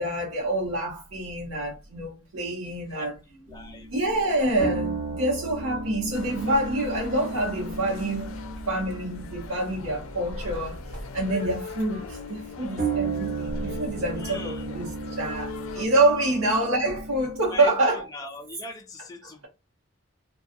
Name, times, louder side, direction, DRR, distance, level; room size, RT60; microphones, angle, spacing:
voice 1, 0.0-3.2 3.9-8.4 8.7-10.8 11.1-18.0, right 1 dB, 85° right, 0.9 m, -26 dB
voice 2, 2.9-3.9 14.2-14.7 16.2-16.4 17.4-19.5, left 2 dB, 15° left, 0.3 m, -41 dB
sound 1, 3.5-12.1 12.8-17.7, right 3 dB, 40° right, 1.4 m, -34 dB
sound 2, 6.1-15.9, left 4 dB, 80° left, 0.5 m, -41 dB
2.6 x 2.3 x 2.5 m
head